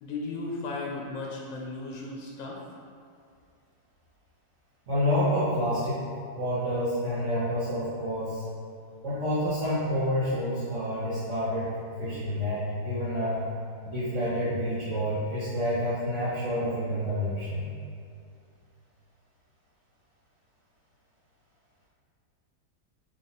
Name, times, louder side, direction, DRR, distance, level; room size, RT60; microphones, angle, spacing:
voice 1, 0.0-2.6, left 3 dB, 85° left, -2 dB, 1.3 m, -35 dB
voice 2, 4.9-6.1 6.3-8.4 9.0-11.7 12.0-13.4 13.8-17.6, equal, 50° right, -11 dB, 1.1 m, -28 dB
4.1 x 3.0 x 4.0 m, 2.4 s
omnidirectional pair, 1.9 m